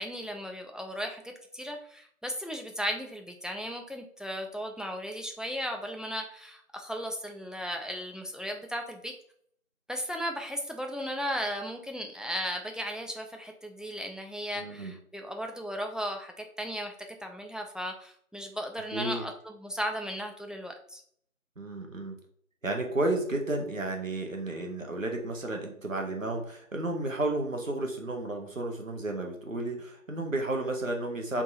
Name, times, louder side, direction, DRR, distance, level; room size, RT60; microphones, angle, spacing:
voice 1, 0.0-9.1 9.9-16.9 17.2-21.0, equal, ahead, 3 dB, 0.3 m, -36 dB
voice 2, 14.6-14.9 18.9-19.3 21.6-22.2 22.6-31.4, right 2 dB, 65° right, 2 dB, 1.1 m, -32 dB
3.5 x 2.8 x 4.1 m, 0.63 s
figure-of-eight pair, 170°, 42 cm